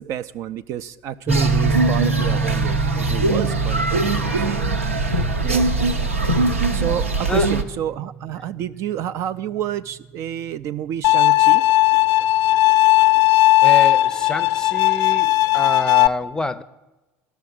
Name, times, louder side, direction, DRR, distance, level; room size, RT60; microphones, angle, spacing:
voice 1, 0.0-4.5 5.4-5.7 6.7-11.6, right 10 dB, 45° right, 12 dB, 0.4 m, -29 dB
sound 1, 1.3-10.0, right 4 dB, 10° right, 0.9 m, -27 dB
sound 2, 1.3-7.6, right 2 dB, 80° right, 0.7 m, -21 dB
Bowed string instrument, 11.0-16.1, left 17 dB, 55° left, 0.5 m, -16 dB
voice 2, 13.6-16.6, left 2 dB, 10° left, 14 dB, 0.5 m, -27 dB
13.0 x 6.3 x 8.4 m, 1.1 s
figure-of-eight pair, 65°, 7 cm